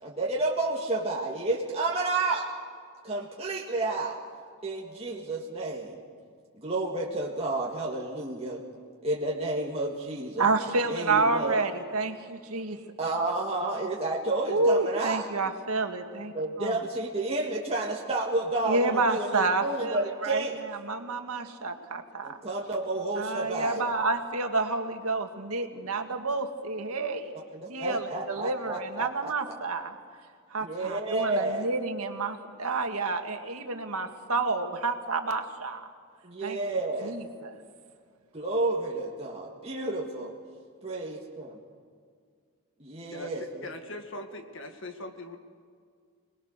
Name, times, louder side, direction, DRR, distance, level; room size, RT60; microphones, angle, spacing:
voice 1, 0.0-2.5 3.0-4.2 4.6-6.0 6.6-8.6 9.0-10.4 10.9-11.6 13.0-15.3 16.3-20.6 22.2-23.9 25.7-25.8 27.5-29.3 30.6-31.7 36.2-37.2 38.3-40.3 40.8-41.5 42.8-43.7, right 2 dB, 30° right, -3 dB, 1.9 m, -31 dB
voice 2, 10.4-12.8 14.5-16.3 16.6-16.8 18.7-22.4 23.2-27.3 27.7-29.9 30.5-35.9 36.4-36.6 37.0-37.6, right 3 dB, 85° right, 5 dB, 1.9 m, -29 dB
voice 3, 43.1-45.4, left 1 dB, 60° left, 5 dB, 1.8 m, -41 dB
27.0 x 19.5 x 6.7 m, 2.1 s
head